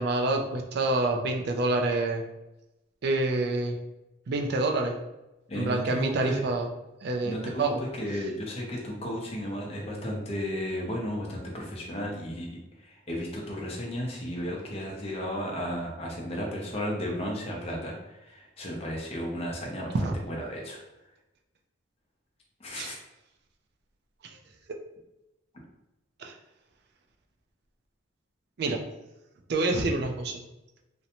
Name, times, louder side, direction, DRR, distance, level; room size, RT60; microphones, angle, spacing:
voice 1, 0.0-2.2 3.0-3.8 4.3-4.9 5.5-6.7 7.0-7.8 20.0-20.2 22.7-22.9 26.2-26.3 28.6-28.8 29.5-30.4, right 2 dB, 50° right, 2 dB, 0.3 m, -27 dB
voice 2, 5.5-6.4 7.2-7.6 7.9-12.6 12.8-17.9 18.3-19.9 20.3-20.8 22.6-23.0, equal, 30° left, -1 dB, 0.5 m, -34 dB
2.5 x 2.1 x 2.8 m, 0.97 s
head